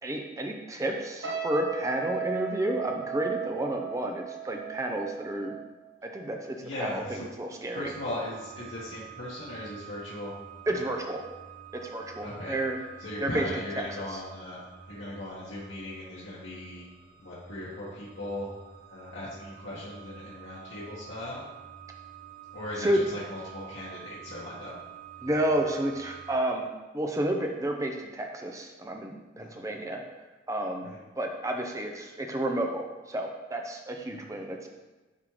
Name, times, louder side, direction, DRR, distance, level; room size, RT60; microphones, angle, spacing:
voice 1, 0.0-5.5 6.0-7.9 10.7-11.2 11.7-12.8 13.2-13.5 13.9-14.2 22.8-23.0 25.2-26.7 26.9-30.0 30.5-30.9 31.2-34.7, right 1 dB, 15° right, 2 dB, 0.5 m, -31 dB
sound 1, 1.2-6.5 6.8-7.1, right 7 dB, 70° right, 0.9 m, -37 dB
voice 2, 6.6-7.2 7.7-10.3 12.2-12.5 13.0-14.6 14.9-16.8 17.2-18.5 18.9-21.4 22.5-24.7 29.4-29.6 30.8-31.0 34.1-34.3, left 1 dB, 90° left, -9 dB, 1.4 m, -38 dB
sound 2, 7.7-26.4, right 9 dB, 60° left, 2.2 m, -48 dB
9.7 x 3.6 x 3.2 m, 1.2 s
head